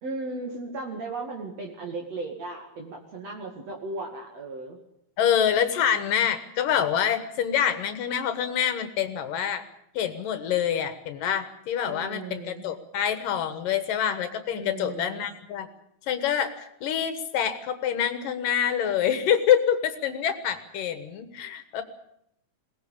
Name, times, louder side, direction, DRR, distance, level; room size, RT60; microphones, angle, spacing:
voice 1, 0.0-4.8 11.8-12.7 14.5-15.2, right 3 dB, 50° right, 1 dB, 3.2 m, -36 dB
voice 2, 5.2-9.6 9.9-15.7 16.1-21.8, left 9 dB, 75° left, 10 dB, 3.0 m, -26 dB
22.0 x 18.5 x 8.6 m, 0.75 s
omnidirectional pair, 3.9 m